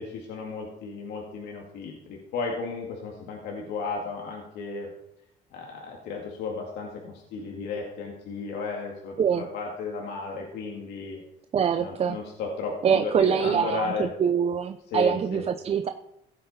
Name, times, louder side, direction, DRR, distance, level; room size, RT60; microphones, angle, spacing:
voice 1, 0.0-4.9 5.5-11.2 11.8-14.1 14.9-15.5, left 4 dB, 80° left, -1 dB, 2.2 m, -34 dB
voice 2, 11.5-12.2 12.8-15.9, right 7 dB, 35° right, 8 dB, 0.6 m, -24 dB
16.0 x 7.8 x 4.2 m, 0.86 s
cardioid pair, 110°, 17 cm